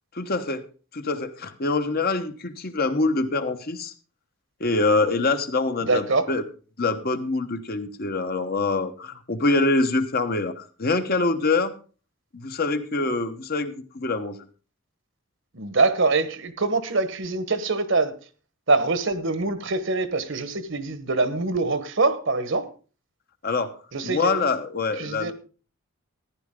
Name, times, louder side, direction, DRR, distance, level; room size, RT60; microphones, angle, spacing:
voice 1, 0.1-0.6 0.9-3.9 4.6-6.4 6.8-11.7 12.3-14.4 23.4-23.8 24.0-25.3, left 3 dB, 45° left, 8 dB, 1.1 m, -25 dB
voice 2, 5.8-6.2 15.5-18.1 18.7-22.7 23.9-24.4 25.0-25.3, right 3 dB, 60° right, 12 dB, 1.2 m, -24 dB
14.5 x 10.5 x 3.7 m, 0.37 s
head